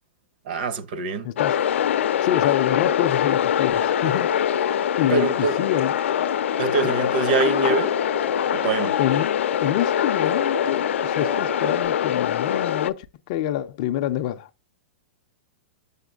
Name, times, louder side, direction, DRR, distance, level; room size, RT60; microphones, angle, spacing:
voice 1, 0.4-1.3 5.1-5.6 6.6-7.9 8.5-9.0, right 4 dB, 45° right, 0.7 m, -24 dB
voice 2, 1.2-1.5 2.2-4.3 5.0-5.9 6.8-6.9 9.0-9.3 9.6-14.5, left 12 dB, 30° left, 0.4 m, -26 dB
sound 1, 1.4-12.9, left 10 dB, 85° left, 0.5 m, -23 dB
sound 2, 3.7-11.9, left 1 dB, 85° right, 4.7 m, -35 dB
7.0 x 6.5 x 2.3 m
supercardioid pair, 175°, 7 cm